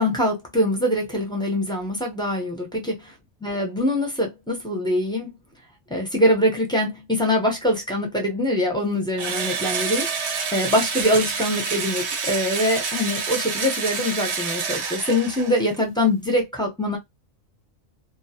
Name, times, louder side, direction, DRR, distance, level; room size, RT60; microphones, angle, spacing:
voice 1, 0.0-3.1 3.4-5.3 5.9-10.1 10.5-17.0, left 1 dB, 5° left, 0.5 m, -23 dB
Engine / Drill, 9.2-15.8, right 5 dB, 65° right, 0.8 m, -28 dB
2.3 x 2.3 x 2.7 m
omnidirectional pair, 1.4 m